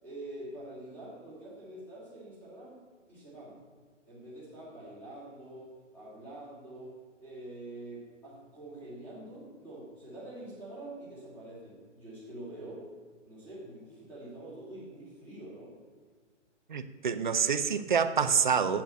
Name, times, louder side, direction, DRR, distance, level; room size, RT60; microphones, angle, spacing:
voice 1, 0.0-2.8 3.1-3.6 4.1-12.8 13.2-15.7, right 1 dB, 5° left, -7 dB, 2.3 m, -46 dB
voice 2, 16.7-18.8, right 6 dB, 40° right, 10 dB, 0.6 m, -27 dB
8.8 x 8.4 x 8.1 m, 1.5 s
hypercardioid pair, 180°, 37 cm